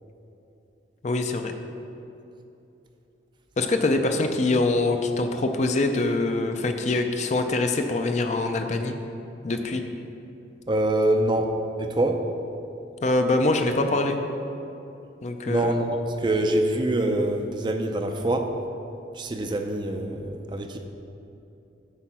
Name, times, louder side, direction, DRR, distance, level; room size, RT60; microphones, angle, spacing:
voice 1, 1.0-1.5 3.6-9.0 9.4-9.8 13.0-14.2 15.2-15.7, left 2 dB, 40° left, 6 dB, 0.5 m, -24 dB
voice 2, 10.7-12.3 15.5-18.5 19.1-20.8, right 1 dB, 25° right, 5 dB, 0.4 m, -25 dB
8.3 x 4.5 x 6.0 m, 2.9 s
head